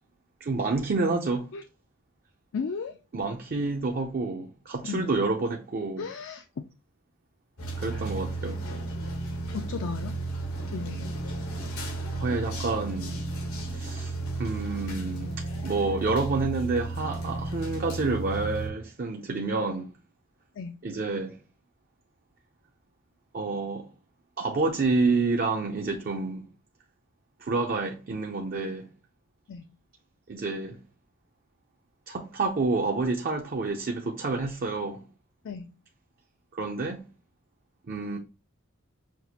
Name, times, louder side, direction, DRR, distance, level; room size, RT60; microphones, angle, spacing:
voice 1, 0.4-1.5 3.1-6.1 7.8-8.7 12.2-13.2 13.7-14.1 14.4-19.9 20.8-21.4 23.3-23.9 24.4-26.5 27.4-28.8 30.3-30.8 32.1-35.0 36.5-37.0 37.9-38.2, right 3 dB, 45° right, 0.5 m, -28 dB
voice 2, 2.5-3.0 4.8-5.1 6.0-6.7 9.5-10.2 10.7-11.2 20.6-20.8 29.5-29.7 35.4-35.7, left 5 dB, 60° left, 0.4 m, -35 dB
sound 1, 7.6-18.7, right 2 dB, 90° left, 1.2 m, -33 dB
5.9 x 2.4 x 2.7 m
head